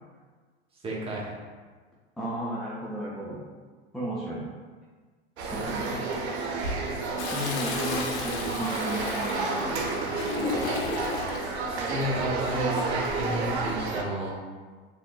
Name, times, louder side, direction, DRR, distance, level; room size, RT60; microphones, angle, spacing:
voice 1, 0.8-1.3 11.7-14.4, equal, 15° right, -4 dB, 0.9 m, -32 dB
voice 2, 2.2-3.4 3.9-4.4 5.5-6.0 7.3-9.8, right 1 dB, ahead, -7 dB, 0.4 m, -34 dB
sound 1, 5.4-14.0, right 3 dB, 80° right, 0.6 m, -30 dB
Toilet flush, 7.2-11.5 12.9-13.4, left 4 dB, 45° left, 0.6 m, -34 dB
3.5 x 2.7 x 2.3 m, 1.5 s
hypercardioid pair, 95°, 32 cm